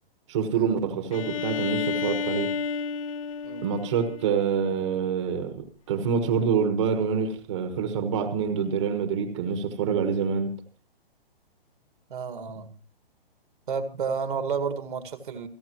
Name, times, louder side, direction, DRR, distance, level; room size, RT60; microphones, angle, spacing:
voice 1, 0.3-2.5 3.6-10.5, right 6 dB, 30° right, 8 dB, 1.3 m, -26 dB
Bowed string instrument, 1.1-4.9, left 5 dB, 35° left, 0.9 m, -31 dB
voice 2, 12.1-12.7 13.7-15.5, right 5 dB, 55° right, 10 dB, 1.9 m, -31 dB
28.0 x 9.9 x 3.0 m, 0.33 s
hypercardioid pair, 170°, 30 cm